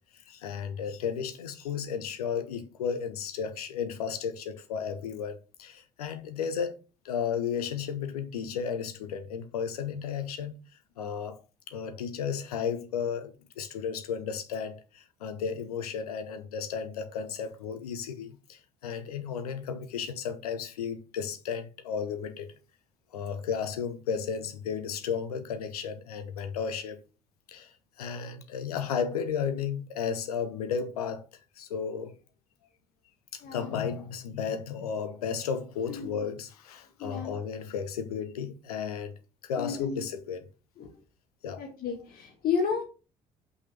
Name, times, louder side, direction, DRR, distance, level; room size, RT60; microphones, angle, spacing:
voice 1, 0.1-6.7 7.0-10.5 11.0-11.4 11.7-22.5 23.1-27.0 27.5-31.2 31.6-32.1 33.3-39.1 39.4-40.4 41.4-41.6, left 7 dB, 75° left, 0.9 m, -34 dB
voice 2, 33.4-33.7 35.9-36.3 37.0-37.3 39.6-40.1 40.8-40.9 41.6-42.8, left 6 dB, 50° left, 1.4 m, -32 dB
5.7 x 4.0 x 5.4 m
figure-of-eight pair, 50°, 19 cm